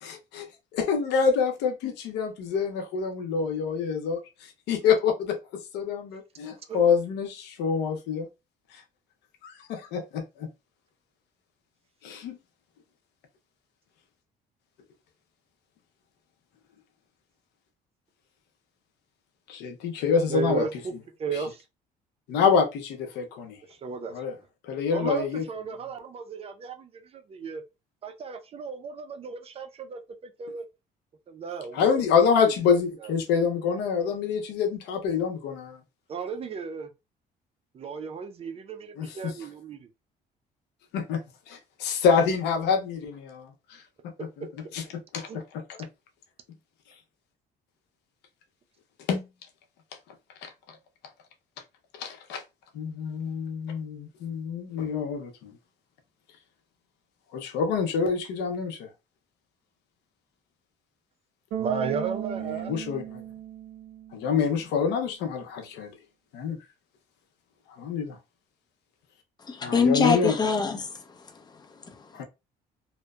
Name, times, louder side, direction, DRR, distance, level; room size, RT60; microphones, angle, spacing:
voice 1, 0.0-0.5 0.7-5.4 5.7-8.3 9.4-10.5 12.0-12.4 19.5-20.6 22.3-23.6 24.1-24.3 24.7-25.4 31.7-35.8 39.0-39.3 40.9-43.8 44.7-44.8 45.1-45.9 49.1-49.3 50.4-50.5 52.0-52.4 52.7-55.5 57.3-58.9 62.6-63.2 64.1-65.9 66.3-66.6 67.8-68.2 69.6-70.3 72.1-72.2, left 6 dB, 85° left, 0.6 m, -26 dB
voice 2, 20.3-20.9 21.2-21.6 23.7-24.2 24.9-27.6 28.0-30.6 31.3-31.9 33.0-33.1 36.1-36.9 37.7-39.9 45.3-45.4 61.6-62.8, right 5 dB, 35° right, 0.4 m, -34 dB
Bass guitar, 61.5-64.6, right 11 dB, 85° right, 0.6 m, -36 dB
voice 3, 69.4-72.1, left 4 dB, 25° left, 0.6 m, -26 dB
2.7 x 2.1 x 2.3 m
cardioid pair, 110°, 17 cm